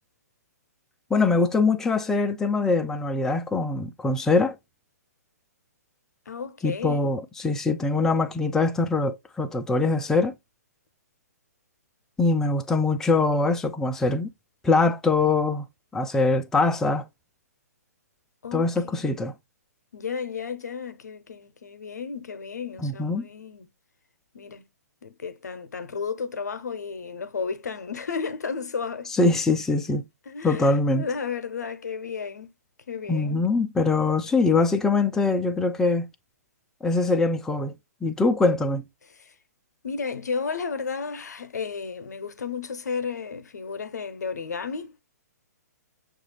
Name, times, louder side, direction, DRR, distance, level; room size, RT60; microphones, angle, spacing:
voice 1, 1.1-4.6 6.6-10.3 12.2-14.3 14.6-15.7 15.9-17.0 18.5-19.3 22.8-23.3 29.2-30.0 30.4-31.1 33.1-36.0 36.8-37.7 38.0-38.8, left 3 dB, 5° left, 0.3 m, -23 dB
voice 2, 6.3-7.2 18.4-19.1 19.9-23.7 24.3-24.6 25.0-29.1 30.3-32.5 32.9-33.5 39.1-39.3 39.8-45.0, left 5 dB, 75° left, 0.7 m, -33 dB
6.5 x 2.4 x 3.1 m
figure-of-eight pair, 130°, 9 cm